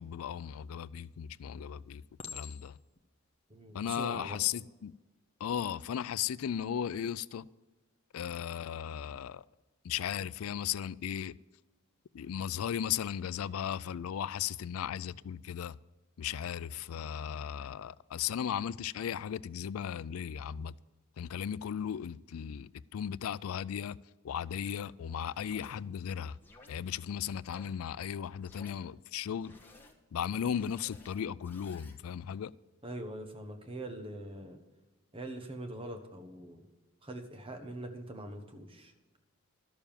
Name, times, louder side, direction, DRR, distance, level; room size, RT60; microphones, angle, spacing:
voice 1, 0.0-2.0 2.3-2.7 3.7-4.9 5.4-7.5 8.1-9.4 9.8-11.4 12.1-15.8 16.2-20.7 21.2-24.0 24.2-26.4 26.7-29.5 30.1-32.5, left 9 dB, 85° left, 0.4 m, -36 dB
Chink clink, 0.7-1.2 2.2-3.0 3.7-4.0, left 6 dB, 30° left, 0.9 m, -47 dB
voice 2, 3.5-4.4 32.8-34.6 35.1-36.7 37.0-38.9, right 1 dB, 25° right, 1.3 m, -43 dB
sound 1, 25.4-25.7 26.4-26.7 27.5-27.7 28.4-28.7 29.4-29.9 30.4-32.0, left 2 dB, 10° left, 1.3 m, -56 dB
12.5 x 6.9 x 7.3 m
head